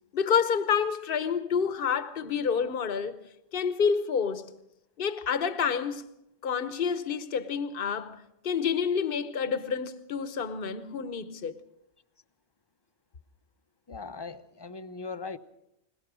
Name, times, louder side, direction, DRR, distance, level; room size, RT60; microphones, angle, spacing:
voice 1, 0.1-3.2 3.5-4.5 5.0-6.1 6.4-11.6, left 6 dB, 55° left, 1.1 m, -28 dB
voice 2, 13.9-15.4, left 4 dB, 25° left, 0.7 m, -39 dB
21.5 x 20.0 x 6.1 m
omnidirectional pair, 1.1 m